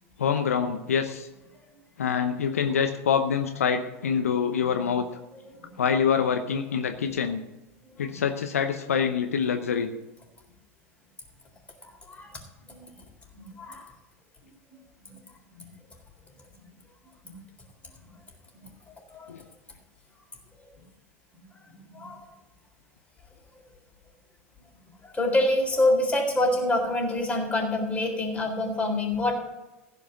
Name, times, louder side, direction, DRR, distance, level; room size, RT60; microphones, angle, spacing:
voice 1, 0.2-1.3 2.0-5.0 5.8-7.4 8.0-9.9 19.3-19.4, left 7 dB, 80° left, 7 dB, 0.8 m, -25 dB
voice 2, 5.4-5.7 8.0-8.2 11.8-12.4 12.7-12.9 13.3-13.9 15.0-15.1 15.5-15.7 17.2-17.4 18.5-18.7 19.1-19.3 21.3-22.3 25.0-29.3, left 1 dB, 15° left, 0 dB, 3.9 m, -27 dB
15.5 x 5.2 x 8.0 m, 1.0 s
figure-of-eight pair, 85°, 8 cm